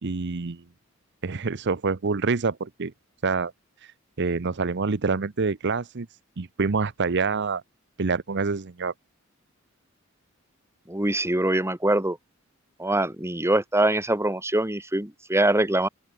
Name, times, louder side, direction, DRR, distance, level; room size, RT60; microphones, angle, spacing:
voice 1, 0.0-0.6 1.2-2.9 3.2-3.5 4.2-6.1 6.4-7.6 8.0-8.9, right 4 dB, 55° right, 0.8 m, -26 dB
voice 2, 10.9-12.2 12.8-15.9, right 1 dB, 15° right, 2.3 m, -23 dB
open air
head